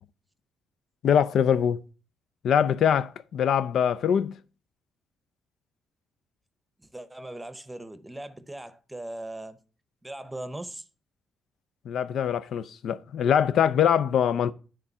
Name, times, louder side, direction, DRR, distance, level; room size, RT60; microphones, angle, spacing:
voice 1, 1.0-1.8 2.4-4.3 11.9-14.5, left 8 dB, 70° left, 0.5 m, -23 dB
voice 2, 6.8-9.6 10.0-10.8, right 1 dB, 10° right, 0.8 m, -39 dB
9.8 x 3.7 x 5.5 m
cardioid pair, 90°, 0 cm